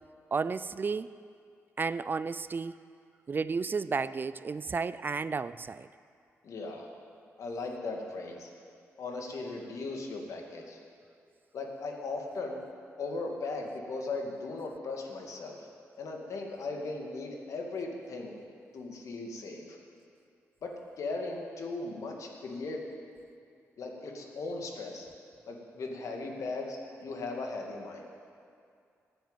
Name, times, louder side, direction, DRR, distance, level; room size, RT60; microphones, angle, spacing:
voice 1, 0.3-1.1 1.8-2.8 3.3-5.9, right 4 dB, 40° right, 16 dB, 0.4 m, -32 dB
voice 2, 6.4-6.9 7.4-8.5 9.0-10.8 11.5-12.6 13.0-15.7 16.0-18.4 18.7-19.8 20.6-20.7 21.0-22.8 23.8-25.1 25.5-28.1, left 3 dB, 70° left, 1 dB, 2.1 m, -38 dB
14.0 x 7.8 x 8.9 m, 2.4 s
cardioid pair, 80°, 6 cm